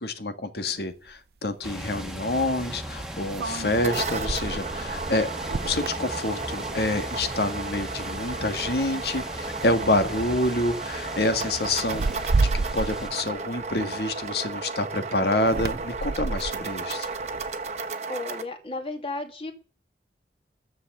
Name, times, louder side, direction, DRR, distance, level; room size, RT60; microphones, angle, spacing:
voice 1, 0.0-12.0 12.4-17.1, left 2 dB, 70° left, 9 dB, 1.7 m, -27 dB
sound 1, 1.1-1.2 3.3-7.0 7.3-7.7 8.1-8.7 9.6-9.8 10.1-10.4 11.8-14.5 15.4-17.8, right 3 dB, 60° right, 0.5 m, -31 dB
sound 2, 1.6-13.1, right 1 dB, 5° right, 1.3 m, -37 dB
sound 3, 3.5-18.4, right 4 dB, 40° right, 1.1 m, -34 dB
voice 2, 18.1-19.5, left 2 dB, 30° left, 4 dB, 2.3 m, -33 dB
13.0 x 7.2 x 7.4 m, 0.42 s
head